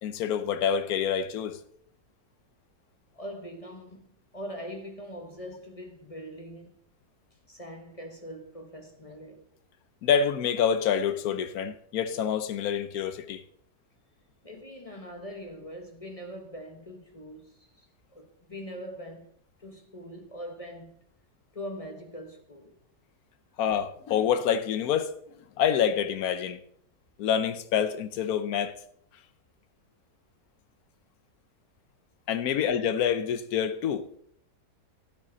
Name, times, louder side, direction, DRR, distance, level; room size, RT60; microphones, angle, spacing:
voice 1, 0.0-1.6 10.0-13.4 23.6-25.1 25.6-26.6 27.2-28.7 32.3-34.2, left 8 dB, 65° left, 1.2 m, -27 dB
voice 2, 3.1-6.7 7.5-9.4 14.4-19.3 19.6-21.0 21.5-22.7 32.5-32.7, equal, 25° left, 1.1 m, -42 dB
12.5 x 9.2 x 4.0 m
omnidirectional pair, 1.8 m